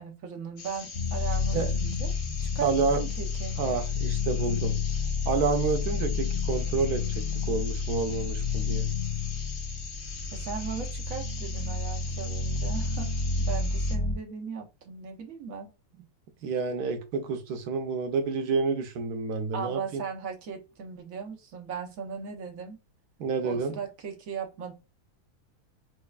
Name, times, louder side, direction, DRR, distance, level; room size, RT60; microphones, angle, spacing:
voice 1, 0.0-2.1 2.4-3.6 10.3-13.1 13.4-15.7 19.5-22.8 23.4-24.7, right 6 dB, 65° right, 1.2 m, -37 dB
sound 1, 0.6-14.0, left 5 dB, 70° left, 1.6 m, -43 dB
sound 2, 0.9-14.1, left 4 dB, 50° left, 0.9 m, -30 dB
voice 2, 2.6-3.0 3.6-4.8 5.3-8.9 16.4-20.0 23.2-23.8, right 4 dB, 85° right, 1.2 m, -29 dB
4.4 x 2.3 x 2.3 m
omnidirectional pair, 1.6 m